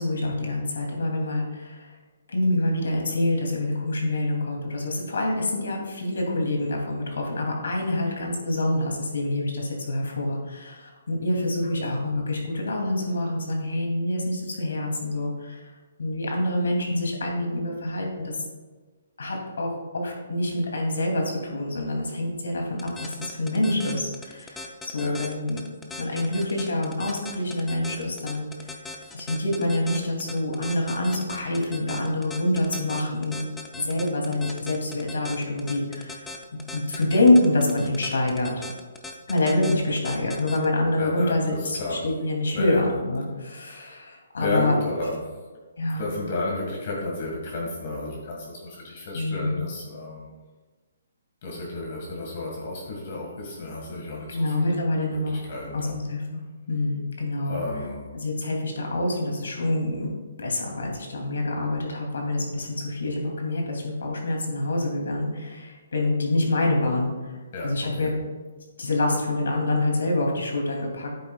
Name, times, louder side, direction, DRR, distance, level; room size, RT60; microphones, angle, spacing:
voice 1, 0.0-1.9 2.3-15.7 16.0-18.3 19.2-25.6 26.0-28.5 29.1-33.4 33.8-36.3 36.7-38.6 39.3-44.7 45.8-46.0 49.1-49.6 54.3-55.4 55.7-56.2 56.7-57.6 58.1-60.1 60.4-67.2 67.6-68.1 68.8-71.2, left 1 dB, 85° left, 1 dB, 2.7 m, -26 dB
sound 1, 22.8-40.7, left 3 dB, 5° left, 0.5 m, -38 dB
voice 2, 41.0-42.0 42.5-42.9 43.5-44.1 44.4-45.2 45.9-50.3 51.4-54.7 55.1-56.0 57.5-58.1 67.5-68.1, left 2 dB, 40° left, -2 dB, 1.8 m, -32 dB
11.0 x 8.5 x 2.4 m, 1.3 s
hypercardioid pair, 170°, 0 cm